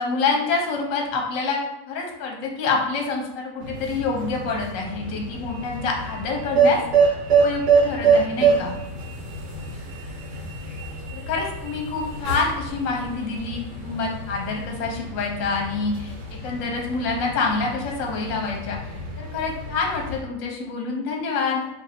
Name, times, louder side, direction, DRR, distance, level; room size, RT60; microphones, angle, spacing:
voice 1, 0.0-8.8 11.1-16.1 16.4-21.7, left 4 dB, 60° left, 1 dB, 1.0 m, -27 dB
sound 1, 3.6-20.2, right 5 dB, 80° right, 1.5 m, -26 dB
3.0 x 2.5 x 4.1 m, 0.87 s
omnidirectional pair, 1.8 m